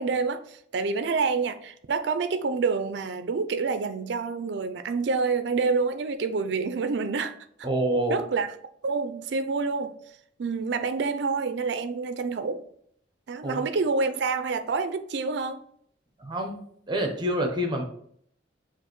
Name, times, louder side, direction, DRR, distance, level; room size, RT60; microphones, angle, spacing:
voice 1, 0.0-7.5 8.1-8.5 8.8-10.0 10.4-12.6 13.3-15.6, right 4 dB, 60° right, 9 dB, 0.4 m, -27 dB
voice 2, 7.6-8.2 13.4-13.6 16.2-16.6 16.9-17.8, right 1 dB, 25° right, 4 dB, 0.7 m, -27 dB
6.5 x 2.5 x 3.0 m, 0.66 s
head